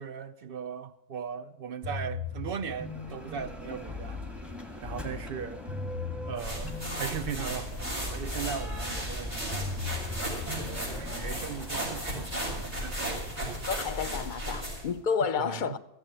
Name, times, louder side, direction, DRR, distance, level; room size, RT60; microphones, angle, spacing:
voice 1, 0.0-4.2 4.8-5.6 6.3-9.7 10.5-12.3 12.6-13.2 15.2-15.8, right 7 dB, 60° right, 0.9 m, -38 dB
sound 1, 1.8-11.6, left 4 dB, 35° right, 1.7 m, -40 dB
Bell, 2.3-14.1, left 1 dB, ahead, 1.4 m, -44 dB
sound 2, 6.4-14.9, equal, 85° right, 5.7 m, -35 dB
voice 2, 13.7-15.8, left 6 dB, 50° left, 0.8 m, -30 dB
14.5 x 8.0 x 8.8 m
omnidirectional pair, 1.1 m